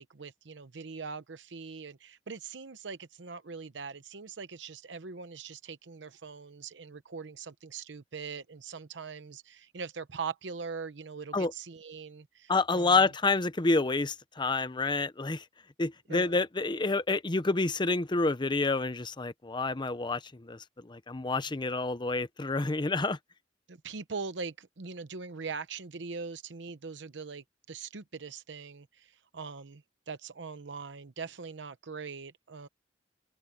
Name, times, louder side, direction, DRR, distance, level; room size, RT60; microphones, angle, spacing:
voice 1, 0.0-13.1 16.1-16.4 23.7-32.7, right 5 dB, 85° right, 0.8 m, -42 dB
voice 2, 12.5-15.4 15.8-23.2, left 3 dB, 25° left, 0.7 m, -28 dB
open air
head